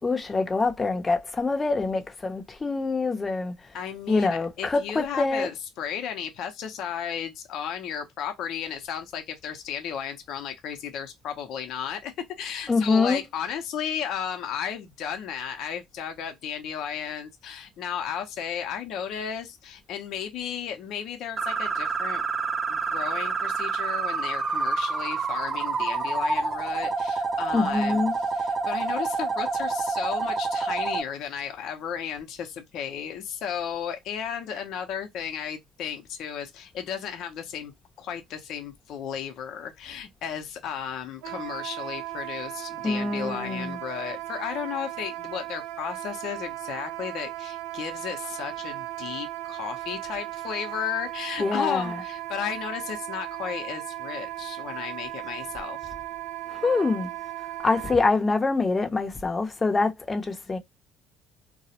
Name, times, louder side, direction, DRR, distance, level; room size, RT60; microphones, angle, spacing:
voice 1, 0.0-3.5 4.1-5.5 12.7-13.2 27.5-28.1 42.8-43.8 51.4-52.0 56.5-57.1 57.6-60.6, left 3 dB, 25° left, 0.6 m, -25 dB
voice 2, 3.7-22.2 22.7-28.0 28.3-37.7 38.0-55.8, left 8 dB, 70° left, 0.6 m, -34 dB
sound 1, 21.4-31.0, right 4 dB, 35° right, 0.5 m, -28 dB
Wind instrument woodwind instrument, 41.2-58.0, right 15 dB, 85° right, 0.3 m, -36 dB
2.3 x 2.0 x 2.7 m
supercardioid pair, 90°, 0 cm